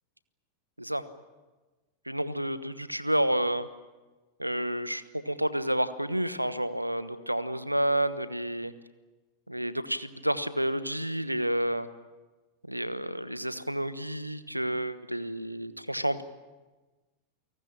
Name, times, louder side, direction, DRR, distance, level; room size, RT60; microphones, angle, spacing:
voice 1, 2.1-3.7 4.4-8.7 9.5-11.9 12.7-16.2, right 1 dB, 90° right, 14 dB, 1.1 m, -30 dB
29.0 x 19.0 x 8.9 m, 1.2 s
figure-of-eight pair, 90°, 0 cm